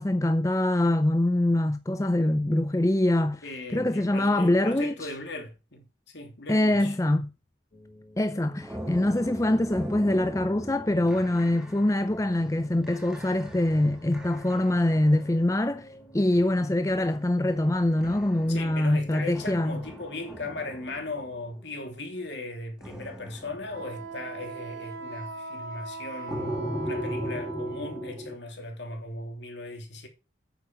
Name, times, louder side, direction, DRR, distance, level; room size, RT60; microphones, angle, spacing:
voice 1, 0.0-3.4 3.7-5.1 6.5-7.3 8.2-15.9 16.1-19.8, left 1 dB, 15° left, 0.5 m, -24 dB
voice 2, 3.4-7.0 18.5-30.1, left 2 dB, 65° left, 2.9 m, -38 dB
sound 1, 7.7-19.8, equal, 45° left, 2.5 m, -51 dB
sound 2, 8.6-15.8 16.3-21.9 22.8-24.4 26.3-28.4, equal, 5° right, 1.7 m, -39 dB
Wind instrument woodwind instrument, 23.7-28.2, right 3 dB, 70° right, 2.8 m, -40 dB
9.0 x 7.5 x 5.2 m
head